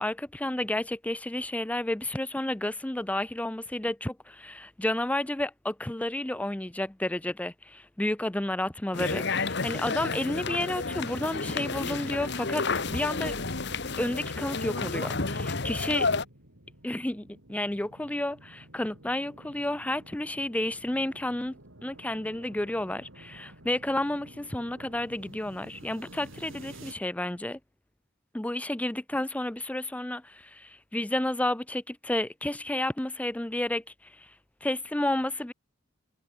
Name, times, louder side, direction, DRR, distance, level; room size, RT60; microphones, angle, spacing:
voice 1, 0.0-13.4 14.0-16.1 16.8-27.6 28.3-34.3 34.6-35.5, left 1 dB, 5° left, 0.5 m, -31 dB
sound 1, 8.9-16.2, left 4 dB, 60° left, 1.6 m, -31 dB
sound 2, 11.2-26.9, right 1 dB, 80° right, 7.2 m, -51 dB
head